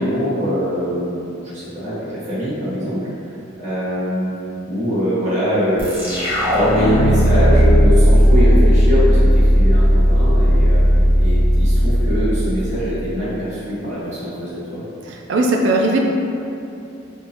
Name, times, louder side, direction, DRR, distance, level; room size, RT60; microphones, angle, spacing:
voice 1, 0.0-3.0 3.6-4.3 4.6-10.8 11.2-14.8, equal, 40° right, -12 dB, 1.1 m, -23 dB
sound 1, 5.8-13.1, equal, 10° right, 0.7 m, -14 dB
voice 2, 15.1-16.0, right 2 dB, 65° right, 1 dB, 0.4 m, -18 dB
3.5 x 2.6 x 2.8 m, 2.7 s
head